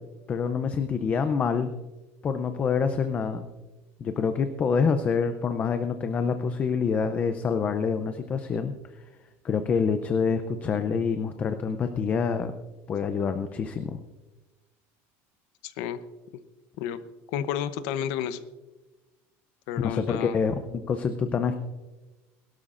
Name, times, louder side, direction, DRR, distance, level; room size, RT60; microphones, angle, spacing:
voice 1, 0.3-1.7 2.2-3.5 4.0-8.7 9.4-12.5 12.9-14.0 19.8-21.6, left 6 dB, 25° left, 8 dB, 0.5 m, -26 dB
voice 2, 15.6-16.0 16.8-17.0 17.3-18.4 19.7-20.4, left 10 dB, 70° left, 12 dB, 0.8 m, -31 dB
21.0 x 12.5 x 2.5 m, 1.1 s
cardioid pair, 170°, 6 cm